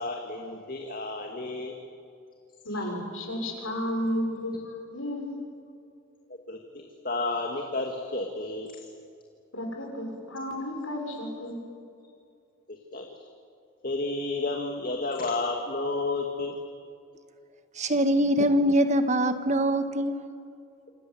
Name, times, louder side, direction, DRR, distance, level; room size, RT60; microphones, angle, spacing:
voice 1, 0.0-1.8 2.7-2.9 6.3-8.7 12.7-13.3 13.8-16.6, left 2 dB, 40° left, 2 dB, 2.1 m, -32 dB
voice 2, 2.6-5.3 9.5-11.6, left 1 dB, 80° left, 2 dB, 6.4 m, -32 dB
voice 3, 17.7-20.2, equal, 35° right, 9 dB, 1.5 m, -23 dB
28.0 x 27.0 x 7.8 m, 2.5 s
head